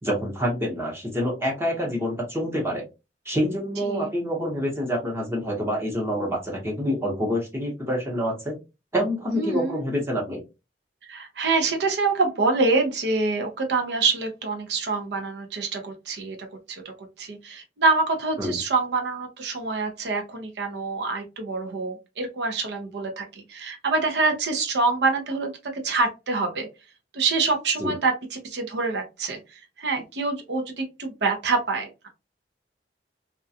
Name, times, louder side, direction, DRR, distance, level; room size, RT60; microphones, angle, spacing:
voice 1, 0.0-2.8 3.3-8.5 8.9-10.4 18.4-18.6 27.8-27.9, equal, 15° right, -2 dB, 0.7 m, -27 dB
voice 2, 3.8-4.1 9.3-9.8 11.0-26.7 27.1-32.1, right 3 dB, 70° right, 5 dB, 0.6 m, -26 dB
2.3 x 2.2 x 2.6 m, 0.26 s
head